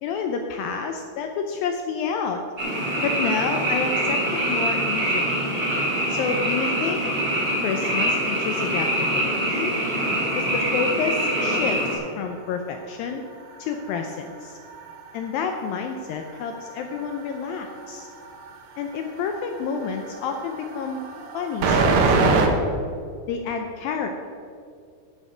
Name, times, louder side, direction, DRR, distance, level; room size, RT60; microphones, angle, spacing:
voice 1, 0.0-2.4 3.0-5.4 6.2-7.1 7.6-9.7 10.4-13.2 13.6-14.6 15.1-18.1 18.8-21.0 21.3-22.6 23.3-24.3, left 6 dB, 80° left, 4 dB, 2.1 m, -29 dB
Frog, 2.6-11.9, right 1 dB, 20° right, 2.0 m, -24 dB
sound 1, 10.5-12.6 13.0-22.5, right 4 dB, 90° right, 1.5 m, -28 dB
15.5 x 6.5 x 5.0 m, 2.4 s
omnidirectional pair, 4.7 m